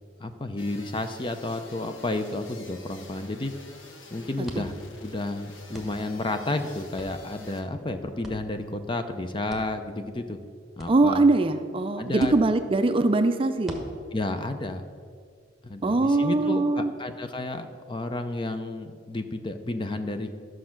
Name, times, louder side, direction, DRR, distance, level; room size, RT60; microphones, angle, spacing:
voice 1, 0.2-3.5 4.1-4.7 5.0-10.4 10.8-11.2 12.0-12.3 14.1-14.8 15.6-20.3, left 2 dB, 25° left, 8 dB, 0.6 m, -31 dB
sound 1, 0.6-7.6, left 2 dB, 75° left, 1.2 m, -49 dB
sound 2, 4.4-16.0, equal, ahead, 1.2 m, -48 dB
voice 2, 10.9-13.8 15.8-16.9, right 2 dB, 30° right, 8 dB, 0.4 m, -22 dB
12.0 x 6.3 x 5.9 m, 2.1 s
head